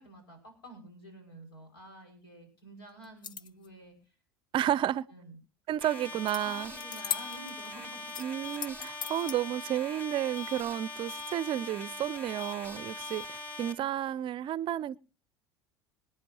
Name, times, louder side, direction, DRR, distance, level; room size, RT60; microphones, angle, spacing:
voice 1, 0.0-4.0 5.0-5.4 6.4-8.2, right 1 dB, 80° left, 5.7 m, -50 dB
sound 1, 3.0-3.7 6.3-6.4 6.7-7.7 8.1-9.4, left 9 dB, 35° left, 0.6 m, -38 dB
voice 2, 4.5-5.0 5.7-6.7 8.2-15.0, right 11 dB, 40° right, 0.5 m, -32 dB
sound 2, 5.8-13.7, left 2 dB, 10° left, 3.1 m, -41 dB
26.0 x 9.6 x 2.9 m
hypercardioid pair, 70°, 13 cm